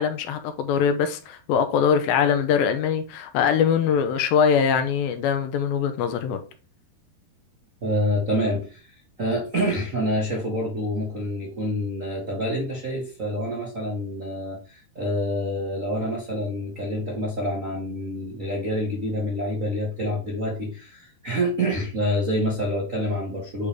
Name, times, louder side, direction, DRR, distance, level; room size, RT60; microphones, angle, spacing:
voice 1, 0.0-6.4, left 7 dB, 80° left, 2.3 m, -22 dB
voice 2, 7.8-23.7, equal, 60° right, 0.8 m, -27 dB
8.5 x 3.4 x 5.0 m
omnidirectional pair, 4.5 m